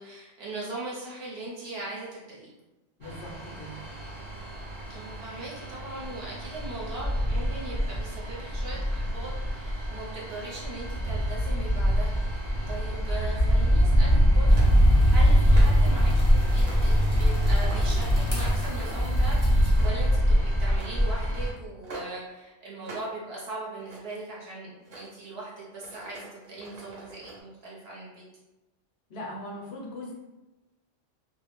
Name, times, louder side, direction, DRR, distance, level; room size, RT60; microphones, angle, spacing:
voice 1, 0.0-2.5 4.9-28.2, right 2 dB, 60° right, -6 dB, 1.0 m, -40 dB
voice 2, 3.0-3.8 29.1-30.1, left 1 dB, 65° left, -2 dB, 0.8 m, -39 dB
sound 1, 3.0-21.5, equal, 35° right, 0.6 m, -24 dB
sound 2, 13.5-13.9 14.5-14.8 15.3-15.9 16.6-16.9 17.4-18.1 18.8-19.2 19.6-20.1 20.7-21.0 21.8-22.2 22.8-23.1 23.6-24.2 24.8-25.1 25.7-27.4, right 2 dB, 85° right, 1.1 m, -44 dB
sound 3, 14.5-19.8, equal, 20° left, 0.6 m, -27 dB
2.5 x 2.1 x 3.0 m, 1.0 s
omnidirectional pair, 1.2 m